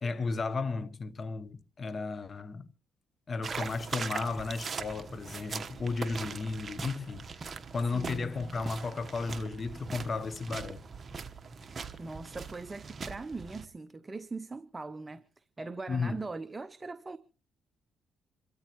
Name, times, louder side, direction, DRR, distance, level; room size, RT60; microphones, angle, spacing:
voice 1, 0.0-2.7 3.3-7.3 7.7-10.8 15.9-16.2, left 4 dB, 40° left, 1.0 m, -34 dB
sound 1, 3.4-13.6, right 5 dB, 40° right, 1.2 m, -41 dB
voice 2, 7.9-8.6 12.0-17.2, right 3 dB, 25° right, 0.7 m, -41 dB
27.0 x 13.5 x 3.0 m
cardioid pair, 90°, 0 cm